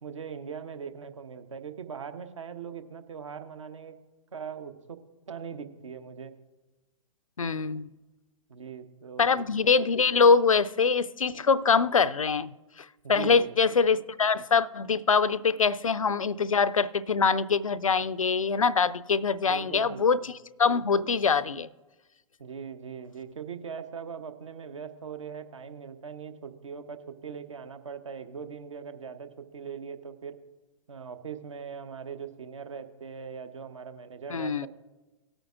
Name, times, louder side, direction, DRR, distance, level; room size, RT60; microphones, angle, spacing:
voice 1, 0.0-4.0 4.3-5.0 5.3-6.4 8.5-9.3 13.0-13.5 19.5-20.3 22.4-30.4 30.9-34.7, right 6 dB, 65° right, 0.9 m, -40 dB
voice 2, 7.4-7.9 9.2-20.3 20.6-21.7 34.3-34.7, left 5 dB, 80° left, 0.4 m, -24 dB
18.0 x 8.8 x 2.4 m
figure-of-eight pair, 115°, 17 cm